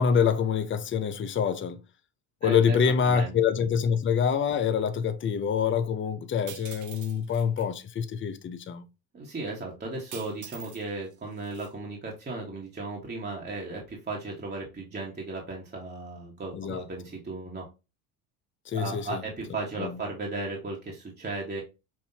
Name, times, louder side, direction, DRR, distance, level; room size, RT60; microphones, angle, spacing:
voice 1, 0.0-1.8 2.4-8.8 16.5-16.8 18.7-19.2 19.8-19.9, left 7 dB, 30° left, 0.6 m, -26 dB
voice 2, 2.4-3.3 9.1-17.7 18.7-21.6, right 3 dB, 20° right, 1.5 m, -36 dB
sound 1, 6.5-7.7 10.1-10.8 11.1-11.7, right 9 dB, 45° right, 0.7 m, -45 dB
5.8 x 2.7 x 2.8 m
supercardioid pair, 90°, 44 cm